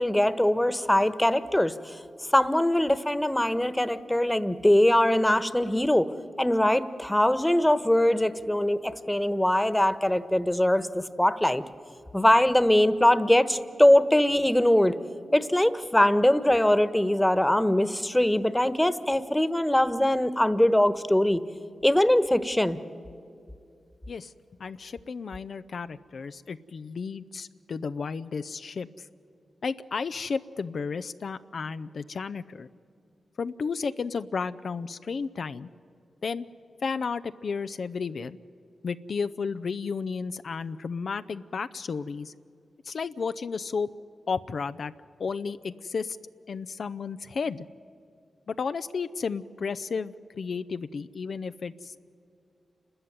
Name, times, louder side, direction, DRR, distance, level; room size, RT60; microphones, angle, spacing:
voice 1, 0.0-2.0 2.3-6.1 6.4-11.6 12.1-14.9 15.3-21.4 21.8-22.8, left 1 dB, 10° left, 14 dB, 1.3 m, -22 dB
voice 2, 24.6-29.1 29.6-32.7 33.4-35.7 36.2-36.5 36.8-38.4 38.8-42.3 42.8-43.9 44.3-44.9 45.2-46.2 46.5-47.7 48.5-52.0, left 5 dB, 70° left, 11 dB, 0.5 m, -33 dB
29.0 x 13.5 x 9.5 m, 2.5 s
supercardioid pair, 40°, 0 cm